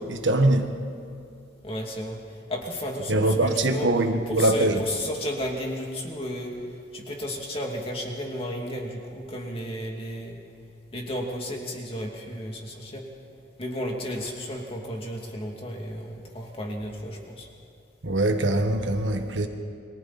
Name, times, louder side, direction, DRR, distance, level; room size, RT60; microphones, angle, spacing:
voice 1, 0.1-0.7 3.1-4.8 18.0-19.5, right 1 dB, 70° right, 5 dB, 1.6 m, -22 dB
voice 2, 1.6-6.6 6.9-10.4 10.9-13.0 13.6-17.5, equal, 30° left, 0 dB, 2.8 m, -33 dB
29.5 x 23.5 x 4.3 m, 2.5 s
head